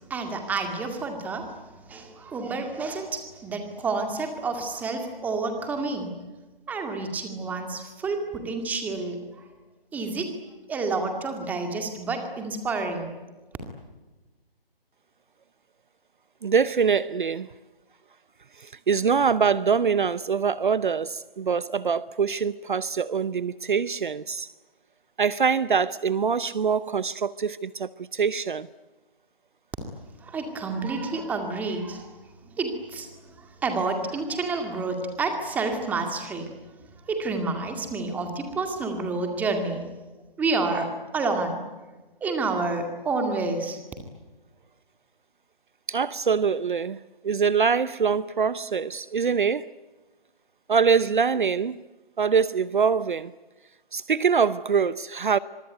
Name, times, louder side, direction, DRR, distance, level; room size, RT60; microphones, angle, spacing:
voice 1, 0.1-6.2 6.7-9.2 9.9-10.3 10.7-13.1 30.2-32.1 32.4-33.1 33.4-36.5 37.1-39.8 40.4-40.9 41.1-41.6 42.2-43.8, right 3 dB, 5° right, 2.1 m, -29 dB
voice 2, 16.4-17.5 18.6-24.5 25.2-28.7 45.9-49.7 50.7-51.8 52.2-53.3 53.9-55.4, right 6 dB, 55° right, 0.8 m, -24 dB
25.5 x 22.5 x 9.3 m
figure-of-eight pair, 155°, 29 cm